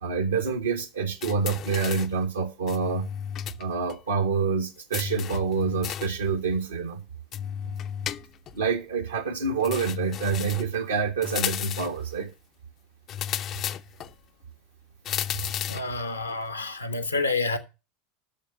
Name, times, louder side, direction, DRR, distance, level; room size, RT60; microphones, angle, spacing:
voice 1, 0.0-3.1 3.6-7.0 8.5-12.3, right 5 dB, 80° right, 1.1 m, -27 dB
sound 1, 1.2-2.2 2.7-3.6 3.9-4.0 4.9-6.2 7.3-8.6 9.6-10.8 11.2-12.0 13.1-14.1 15.0-15.9, left 9 dB, 40° left, 0.4 m, -33 dB
voice 2, 15.7-17.6, left 3 dB, 85° left, 0.8 m, -28 dB
9.2 x 6.5 x 5.3 m
figure-of-eight pair, 80°, 0 cm